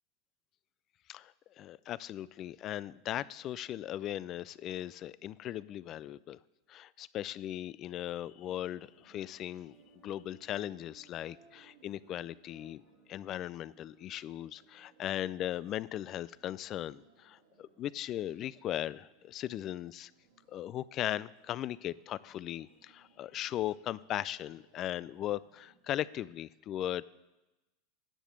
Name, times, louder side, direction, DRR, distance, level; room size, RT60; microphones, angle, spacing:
voice 1, 1.1-6.4 6.7-9.8 10.0-12.8 13.1-20.1 20.5-27.0, left 12 dB, 45° left, 19 dB, 0.4 m, -38 dB
sound 1, 8.4-26.2, right 5 dB, 85° right, 2.3 m, -66 dB
10.0 x 6.7 x 7.6 m, 1.0 s
hypercardioid pair, 100°, 0 cm